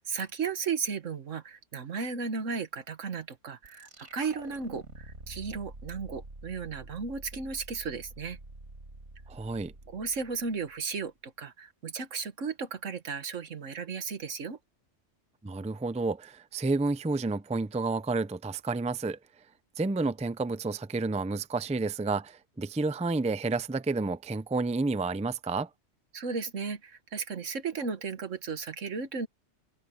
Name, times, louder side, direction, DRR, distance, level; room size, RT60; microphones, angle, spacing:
voice 1, 0.0-8.4 9.9-14.6 26.1-29.3, right 5 dB, 90° right, 1.8 m, -35 dB
sound 1, 3.6-10.9, right 2 dB, 70° right, 3.5 m, -47 dB
voice 2, 9.3-9.7 15.4-19.2 19.8-25.7, right 3 dB, 10° right, 0.4 m, -30 dB
omnidirectional pair, 1.3 m